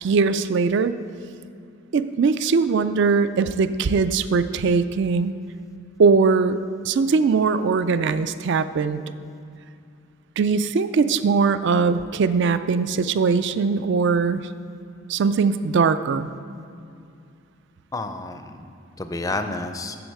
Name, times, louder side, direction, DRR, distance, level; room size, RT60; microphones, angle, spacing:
voice 1, 0.0-0.9 1.9-5.3 6.0-6.6 6.8-9.0 10.4-14.4 15.1-16.3, right 5 dB, 55° right, 13 dB, 0.4 m, -20 dB
voice 2, 17.9-20.0, left 2 dB, 15° left, 8 dB, 0.4 m, -30 dB
7.8 x 7.2 x 6.5 m, 2.4 s
head